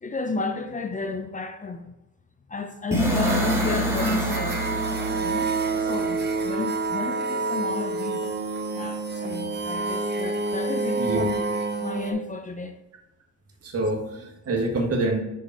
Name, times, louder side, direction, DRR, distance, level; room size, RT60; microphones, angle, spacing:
voice 1, 0.0-1.9 2.5-4.6 5.1-8.4 8.7-11.4 11.8-12.8, left 3 dB, 25° left, 0.6 m, -32 dB
sound 1, 2.9-6.8, equal, 10° right, 1.7 m, -27 dB
sound 2, 3.2-12.1, right 3 dB, 35° right, 0.9 m, -28 dB
voice 2, 11.0-11.3 13.6-15.2, right 2 dB, 50° right, 1.6 m, -26 dB
5.7 x 5.0 x 4.0 m
cardioid pair, 90°, 30 cm